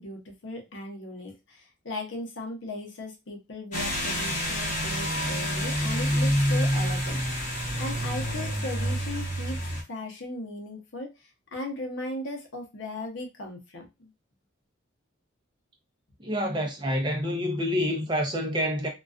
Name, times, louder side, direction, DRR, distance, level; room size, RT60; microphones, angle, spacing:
voice 1, 0.0-9.6 9.9-14.1, left 1 dB, 65° left, 0.7 m, -37 dB
sound 1, 3.7-9.8, equal, 35° left, 0.8 m, -27 dB
voice 2, 16.2-18.9, equal, 25° right, 0.5 m, -27 dB
2.3 x 2.3 x 2.4 m
head